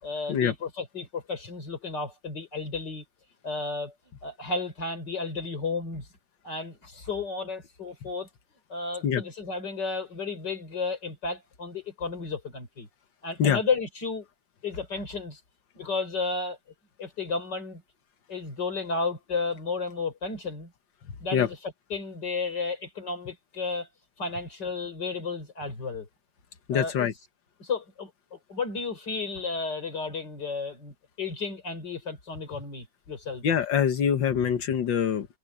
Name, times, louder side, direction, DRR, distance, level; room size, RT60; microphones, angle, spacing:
voice 1, 0.0-3.0 3.4-3.9 4.2-6.1 6.4-8.3 8.7-12.9 13.2-14.3 14.6-15.4 15.7-16.6 17.0-17.8 18.3-20.7 21.2-23.9 24.2-26.1 26.7-27.1 27.6-33.4, left 4 dB, 70° left, 5.1 m, -33 dB
voice 2, 26.7-27.1 33.4-35.3, left 8 dB, 85° left, 2.0 m, -24 dB
omnidirectional pair, 2.0 m